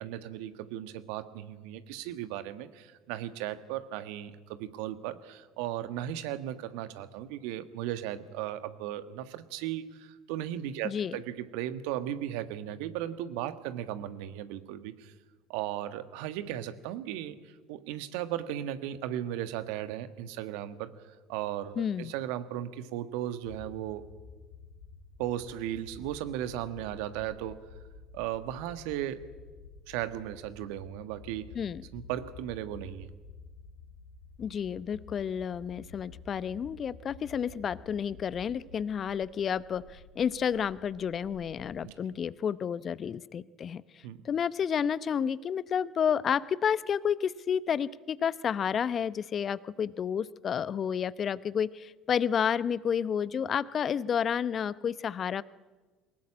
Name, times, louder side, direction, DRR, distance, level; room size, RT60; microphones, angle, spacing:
voice 1, 0.0-15.1 15.5-24.0 25.2-27.7 28.1-29.3 29.9-31.5 31.9-33.1 41.8-41.9 44.0-44.2, right 12 dB, 70° right, 11 dB, 1.5 m, -36 dB
voice 2, 21.8-22.1 31.6-31.8 34.4-43.8 44.2-55.4, left 8 dB, 45° left, 18 dB, 0.8 m, -30 dB
sound 1, 23.4-41.8, left 4 dB, 75° left, 3.6 m, -51 dB
22.5 x 20.0 x 8.7 m, 1.3 s
hypercardioid pair, 60°, 0 cm